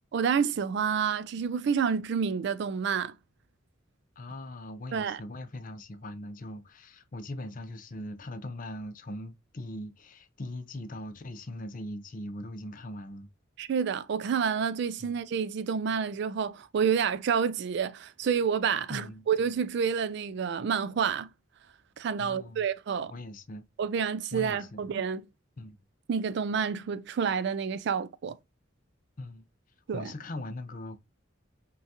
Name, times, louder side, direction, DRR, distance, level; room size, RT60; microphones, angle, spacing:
voice 1, 0.1-3.1 4.9-5.2 13.6-21.3 22.0-23.1 23.8-25.2 26.1-28.4 29.9-30.1, right 6 dB, 55° right, 0.3 m, -29 dB
voice 2, 4.2-13.3 15.0-15.2 18.9-19.3 22.2-22.7 23.0-23.7 24.3-24.8 25.6-25.8 29.2-29.4 29.9-31.0, left 1 dB, 40° left, 0.5 m, -40 dB
5.5 x 2.3 x 2.8 m
head